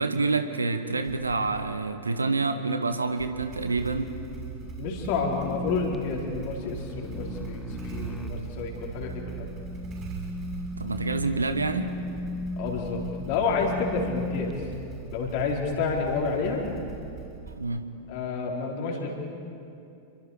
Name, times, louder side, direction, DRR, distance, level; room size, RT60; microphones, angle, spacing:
voice 1, 0.0-4.1 10.8-11.9 17.6-17.8, right 3 dB, 80° right, 9 dB, 1.2 m, -27 dB
Motorcycle / Engine starting, 1.0-1.7 3.1-18.0, right 6 dB, 30° right, 6.5 m, -41 dB
voice 2, 4.8-9.4 12.6-14.5 15.1-16.6 18.1-19.1, left 4 dB, 45° left, -1 dB, 4.4 m, -29 dB
sound 1, 4.9-14.5, left 2 dB, ahead, 0.9 m, -37 dB
28.5 x 23.0 x 5.0 m, 2.6 s
figure-of-eight pair, 90°, 0 cm